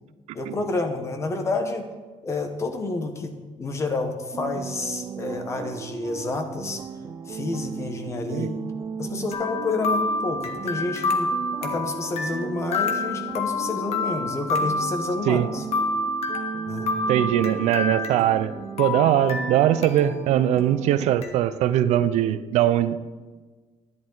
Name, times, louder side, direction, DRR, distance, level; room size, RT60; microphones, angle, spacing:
voice 1, 0.3-1.9 2.2-6.8 7.3-8.6 9.0-11.3 11.6-15.6 16.7-16.9, left 3 dB, 25° left, 6 dB, 1.0 m, -29 dB
sound 1, 4.3-21.1, right 7 dB, 30° right, 0.3 m, -36 dB
sound 2, 9.3-18.5 18.8-20.2 20.6-20.7 21.2-21.3, left 3 dB, 65° left, 1.2 m, -28 dB
voice 2, 17.1-23.0, right 11 dB, 80° right, 13 dB, 0.5 m, -21 dB
11.0 x 11.0 x 3.9 m, 1.3 s
cardioid pair, 175°, 11 cm